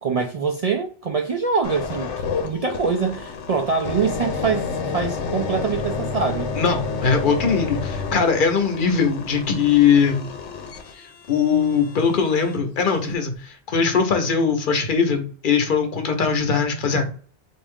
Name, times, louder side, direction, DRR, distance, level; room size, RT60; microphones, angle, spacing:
voice 1, 0.0-2.1 2.4-6.5, right 5 dB, 65° right, 0.3 m, -24 dB
sound 1, 1.6-12.6 13.1-13.3, left 4 dB, 85° left, 1.0 m, -30 dB
voice 2, 6.6-10.3 11.3-17.1, left 6 dB, 50° left, 0.9 m, -20 dB
3.5 x 2.6 x 3.5 m
omnidirectional pair, 1.2 m